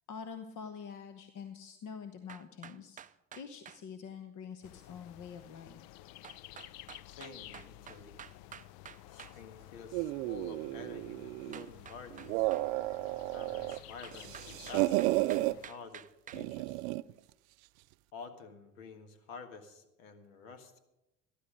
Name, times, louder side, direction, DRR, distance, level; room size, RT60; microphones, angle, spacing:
voice 1, 0.1-3.0 3.3-6.0, left 6 dB, 50° left, 8 dB, 1.1 m, -46 dB
sound 1, 2.3-3.8 6.2-9.4 11.5-12.7 13.7-16.4, right 8 dB, 20° right, 0.4 m, -50 dB
sound 2, 4.6-15.7, left 16 dB, 65° left, 0.5 m, -53 dB
voice 2, 7.1-8.2 9.1-12.5 13.3-16.0 16.3-16.8 18.1-20.8, left 5 dB, 85° left, 8 dB, 1.8 m, -50 dB
sound 3, 9.9-11.7 12.1-13.8 14.1-15.5 16.3-17.1, right 19 dB, 85° right, 0.5 m, -33 dB
15.0 x 11.0 x 5.1 m, 0.91 s
supercardioid pair, 95°, 39 cm